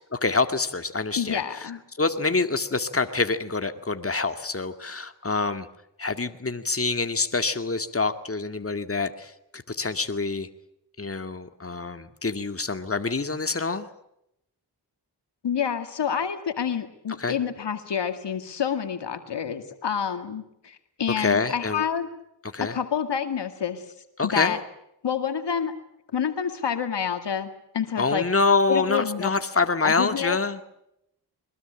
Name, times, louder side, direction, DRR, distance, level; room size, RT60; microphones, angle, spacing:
voice 1, 0.1-1.7 2.0-5.7 6.0-10.5 11.0-13.9 17.2-17.4 21.2-21.8 22.4-22.7 24.2-24.6 28.0-30.6, left 3 dB, 35° left, 9 dB, 2.0 m, -26 dB
voice 2, 1.2-1.8 15.4-22.1 22.6-23.8 24.2-24.6 25.0-25.7 26.1-28.2 28.7-29.3 29.8-30.4, left 8 dB, 90° left, 8 dB, 2.2 m, -28 dB
23.0 x 21.0 x 8.9 m, 0.79 s
cardioid pair, 50°, 41 cm